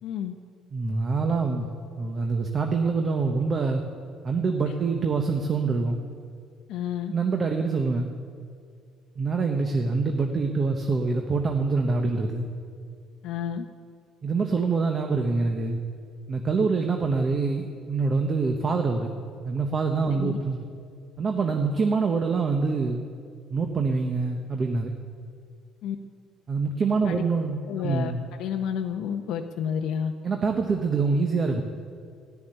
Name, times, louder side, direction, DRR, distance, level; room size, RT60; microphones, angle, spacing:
voice 1, 0.0-0.3 6.7-7.1 13.2-13.7 20.1-20.4 25.8-26.0 27.1-27.2 27.7-30.1, left 8 dB, 70° left, 3 dB, 0.7 m, -30 dB
voice 2, 0.7-1.7 2.0-3.8 4.2-6.0 7.1-8.1 9.2-12.5 14.2-15.8 16.3-19.1 19.4-20.6 21.2-23.1 23.5-24.9 26.5-28.2 30.2-31.6, right 4 dB, 30° right, 4 dB, 0.9 m, -25 dB
14.5 x 7.1 x 10.0 m, 2.2 s
cardioid pair, 140°, 0 cm